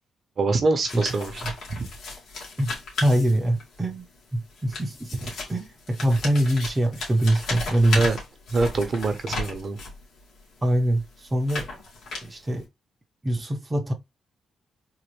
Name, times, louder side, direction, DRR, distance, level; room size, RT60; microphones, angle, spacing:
voice 1, 0.4-1.5 1.8-1.9 7.9-8.2 8.5-9.8, right 3 dB, 40° right, 0.9 m, -24 dB
sound 1, 0.9-3.8 4.5-10.0 10.7-12.6, left 3 dB, 70° left, 2.0 m, -35 dB
voice 2, 3.0-4.0 4.3-8.1 10.6-11.7 12.2-12.7 13.2-13.9, right 1 dB, 15° right, 0.8 m, -24 dB
3.9 x 2.7 x 3.1 m
cardioid pair, 140°, 0 cm